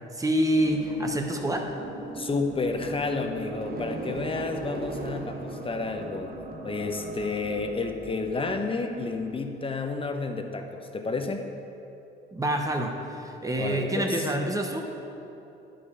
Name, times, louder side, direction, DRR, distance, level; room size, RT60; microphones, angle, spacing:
voice 1, 0.1-1.7 12.3-14.8, right 1 dB, 15° right, 3 dB, 1.0 m, -27 dB
sound 1, 0.5-7.1, right 1 dB, 90° right, 2.0 m, -41 dB
sound 2, 2.0-9.8, right 3 dB, 50° right, 1.0 m, -41 dB
voice 2, 2.1-6.4 6.6-11.5 13.6-14.3, left 3 dB, 25° left, 5 dB, 0.8 m, -31 dB
10.5 x 5.1 x 5.6 m, 2.9 s
cardioid pair, 90°, 20 cm